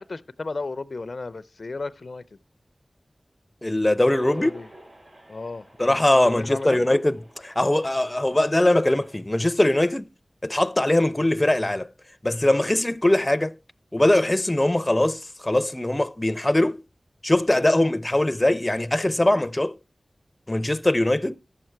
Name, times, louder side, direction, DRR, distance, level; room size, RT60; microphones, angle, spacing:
voice 1, 0.0-2.2 4.4-4.7 5.3-5.7 6.2-6.8, left 3 dB, 75° left, 0.5 m, -33 dB
voice 2, 3.6-4.5 5.8-10.0 10.4-11.9 12.2-13.5 13.9-16.8 17.2-19.7 20.5-21.4, left 1 dB, 25° left, 0.5 m, -21 dB
sound 1, 4.0-9.2, right 1 dB, 65° right, 5.7 m, -45 dB
11.5 x 7.5 x 4.5 m
wide cardioid pair, 50°, 0 cm